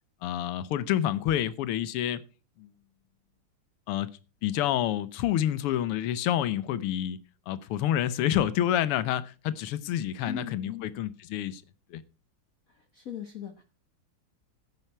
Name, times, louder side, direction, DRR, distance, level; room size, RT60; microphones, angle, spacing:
voice 1, 0.2-2.2 2.6-2.7 3.9-4.1 4.4-7.2 7.5-11.6 11.9-12.0, left 11 dB, 85° left, 1.7 m, -28 dB
voice 2, 10.2-11.0 12.7-13.6, left 7 dB, 50° left, 1.1 m, -40 dB
11.5 x 9.1 x 4.6 m
omnidirectional pair, 2.4 m